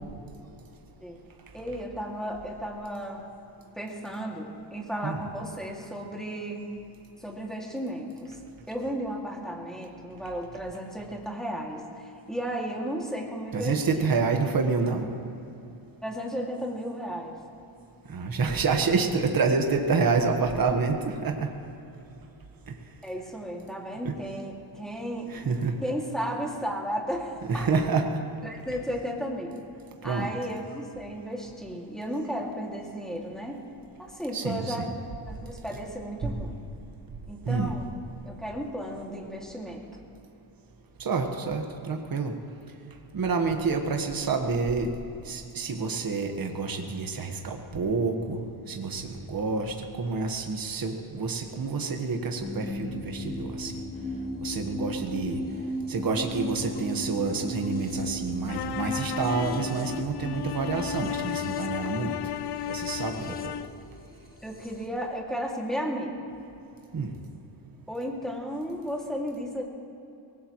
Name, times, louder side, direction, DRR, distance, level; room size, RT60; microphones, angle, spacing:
voice 1, 1.5-3.2 3.7-6.6 7.2-8.4 8.7-14.1 16.0-17.4 23.0-25.3 25.8-27.7 28.4-29.6 30.0-33.7 34.0-34.9 35.3-36.6 37.3-37.9 38.3-39.9 63.3-63.4 64.4-66.2 67.9-69.6, equal, ahead, -2 dB, 2.4 m, -34 dB
voice 2, 13.5-15.1 18.1-21.5 24.0-24.2 25.3-25.7 27.5-28.0 30.0-30.3 34.3-34.9 37.4-37.7 41.0-42.3 43.1-44.9 45.2-48.4 48.7-53.7 54.4-55.4 55.9-62.2 62.7-63.5 66.9-67.1, right 4 dB, 45° right, 3 dB, 1.5 m, -28 dB
sound 1, 52.4-64.9, left 1 dB, 20° left, 1.3 m, -36 dB
sound 2, 58.5-63.8, left 12 dB, 55° left, 0.5 m, -34 dB
23.5 x 19.0 x 3.2 m, 2.8 s
wide cardioid pair, 135°, 48 cm